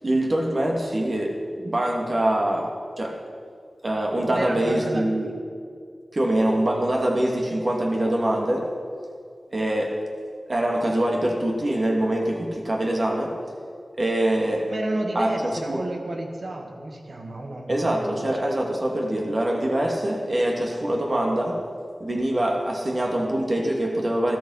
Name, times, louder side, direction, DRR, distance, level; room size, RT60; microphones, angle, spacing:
voice 1, 0.0-3.2 3.8-5.3 6.1-8.7 9.5-10.0 10.5-13.3 14.0-14.7 15.1-15.8 17.7-21.6 22.0-24.4, right 1 dB, 50° right, 0 dB, 2.7 m, -24 dB
voice 2, 4.2-5.1 14.7-17.7 18.0-18.3, right 1 dB, 70° right, 2 dB, 2.1 m, -31 dB
14.0 x 13.5 x 5.8 m, 2.2 s
wide cardioid pair, 55°, 0 cm